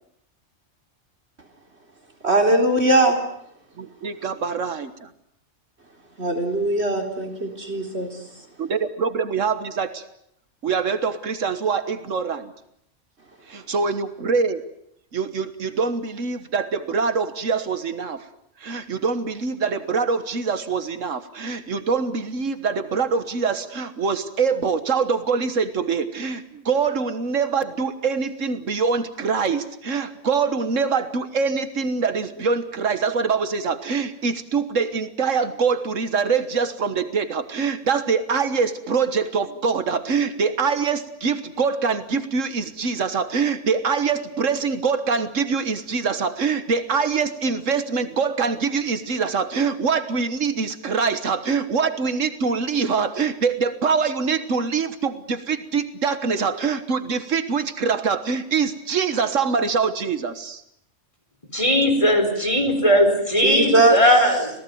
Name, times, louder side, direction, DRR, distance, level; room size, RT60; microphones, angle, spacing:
voice 1, 2.2-3.2 6.2-8.1 63.4-64.0, right 2 dB, 60° right, 3 dB, 4.3 m, -19 dB
voice 2, 3.8-5.1 8.6-10.0 10.6-12.5 13.5-14.6 15.1-18.3 18.6-60.6, right 5 dB, 90° right, 10 dB, 1.8 m, -24 dB
voice 3, 61.5-64.5, equal, 25° left, 6 dB, 4.5 m, -18 dB
27.0 x 18.0 x 9.4 m, 0.74 s
omnidirectional pair, 1.3 m